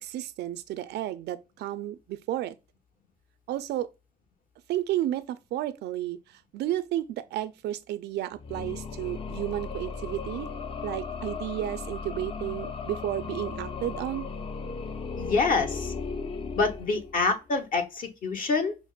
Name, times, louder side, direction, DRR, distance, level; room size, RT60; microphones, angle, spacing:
voice 1, 0.0-2.6 3.5-3.9 4.7-6.2 6.5-10.5 10.8-14.3, right 13 dB, 80° right, 0.4 m, -32 dB
sound 1, 8.3-17.4, left 5 dB, 35° left, 0.4 m, -36 dB
voice 2, 15.2-15.9 16.5-18.8, left 4 dB, 55° left, 0.9 m, -26 dB
5.9 x 2.1 x 2.3 m
cardioid pair, 95°, 17 cm